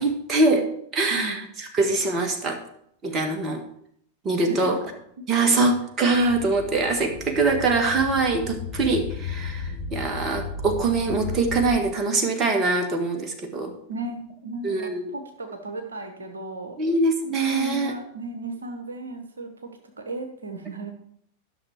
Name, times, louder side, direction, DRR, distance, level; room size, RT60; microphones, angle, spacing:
voice 1, 0.0-0.6 0.9-1.4 1.7-2.6 3.0-3.6 4.2-4.8 5.3-13.7 14.6-15.1 16.8-17.9, right 3 dB, 25° right, 4 dB, 1.6 m, -23 dB
voice 2, 1.1-1.4 4.4-4.6 5.2-5.3 13.9-16.8 17.5-20.9, right 2 dB, 70° right, 5 dB, 1.1 m, -35 dB
sound 1, 6.1-11.7, left 4 dB, 55° left, 3.5 m, -34 dB
11.5 x 6.3 x 4.7 m, 0.70 s
figure-of-eight pair, 90°, 0 cm